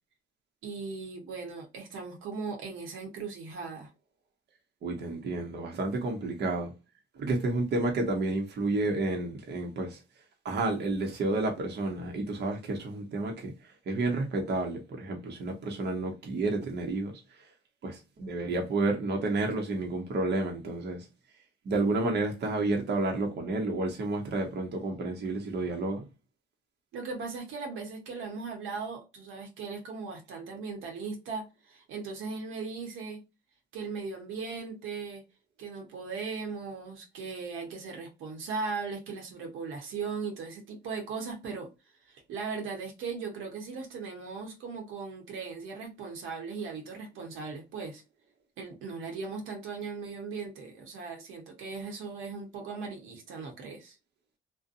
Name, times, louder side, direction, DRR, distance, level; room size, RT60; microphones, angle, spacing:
voice 1, 0.6-3.9 26.9-33.2 33.7-35.2 35.6-41.7 42.1-48.0 48.6-54.0, right 4 dB, 85° right, 1.0 m, -38 dB
voice 2, 4.8-6.7 7.2-10.0 10.4-13.5 13.9-17.1 17.8-21.1 21.6-26.0, right 2 dB, 55° right, 0.8 m, -30 dB
2.6 x 2.2 x 2.5 m
cardioid pair, 90°, 20 cm